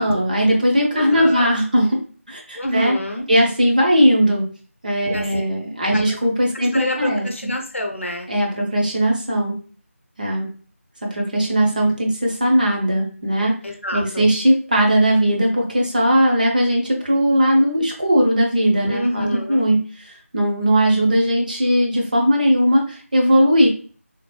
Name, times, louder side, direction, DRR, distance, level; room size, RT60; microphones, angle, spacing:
voice 1, 0.0-2.0 2.3-3.0 3.3-4.4 4.8-7.5 8.3-9.6 10.2-10.5 11.1-13.5 13.9-19.8 20.3-23.7, equal, 35° right, -1 dB, 0.6 m, -18 dB
voice 2, 0.9-1.6 2.5-3.3 5.1-5.3 5.9-6.0 6.5-8.3 13.6-14.3 18.9-19.7, left 1 dB, 60° left, 3 dB, 0.7 m, -27 dB
3.3 x 2.3 x 2.2 m, 0.40 s
figure-of-eight pair, 165°, 8 cm